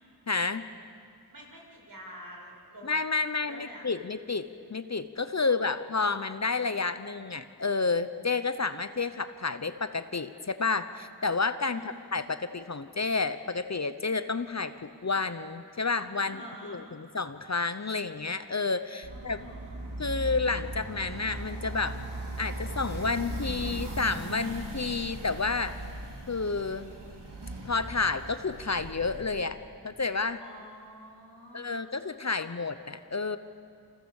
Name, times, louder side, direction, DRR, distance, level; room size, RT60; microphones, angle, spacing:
voice 1, 0.3-0.7 2.8-11.8 12.1-19.4 20.0-22.0 22.4-25.8 26.3-26.9 27.6-29.6 29.8-30.4 31.5-33.4, left 4 dB, 40° left, 11 dB, 1.0 m, -30 dB
voice 2, 1.3-2.9 3.4-3.9 5.3-5.6 11.7-12.1 16.2-16.8 19.1-19.8 30.4-31.7 32.2-32.4, equal, 55° right, -1 dB, 7.6 m, -48 dB
sound 1, 19.0-29.4, right 1 dB, 90° right, 4.4 m, -38 dB
28.0 x 28.0 x 7.3 m, 2.4 s
wide cardioid pair, 80°, 40 cm